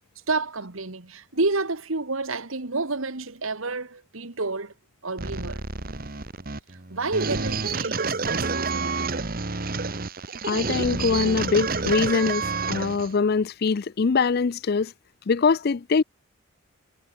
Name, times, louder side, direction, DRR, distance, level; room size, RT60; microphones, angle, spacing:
voice 1, 0.3-4.7 5.0-5.6 6.9-9.2, right 3 dB, 80° right, 2.0 m, -29 dB
sound 1, 5.2-13.1, right 4 dB, 45° right, 1.5 m, -29 dB
voice 2, 10.4-14.9 15.3-16.0, left 5 dB, 50° left, 0.4 m, -23 dB
head